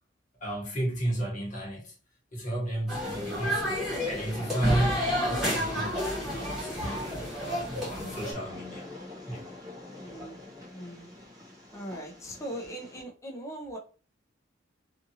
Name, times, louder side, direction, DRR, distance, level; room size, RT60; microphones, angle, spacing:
voice 1, 0.4-1.9 2.3-5.9 6.3-8.9 9.2-9.5, right 1 dB, 45° left, 1.2 m, -33 dB
sound 1, 2.9-8.3, equal, ahead, 1.3 m, -31 dB
Train, 3.0-13.0, left 2 dB, 20° right, 0.8 m, -45 dB
voice 2, 10.0-10.4 10.7-11.1 11.7-13.8, right 1 dB, 15° left, 0.6 m, -40 dB
2.7 x 2.5 x 2.7 m
head